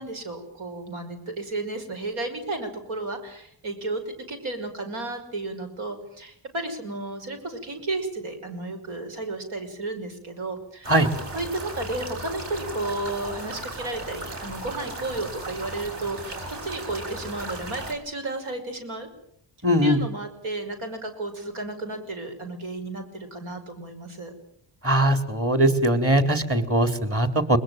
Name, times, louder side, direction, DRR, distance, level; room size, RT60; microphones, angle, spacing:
voice 1, 0.0-10.9 11.3-19.1 19.8-24.3, right 2 dB, 80° right, 5 dB, 5.8 m, -33 dB
sound 1, 10.8-17.9, right 1 dB, 60° right, 7.0 m, -36 dB
voice 2, 19.6-20.0 24.8-27.6, right 1 dB, 25° right, 9 dB, 4.1 m, -21 dB
21.5 x 21.0 x 9.2 m, 0.70 s
cardioid pair, 65°, 48 cm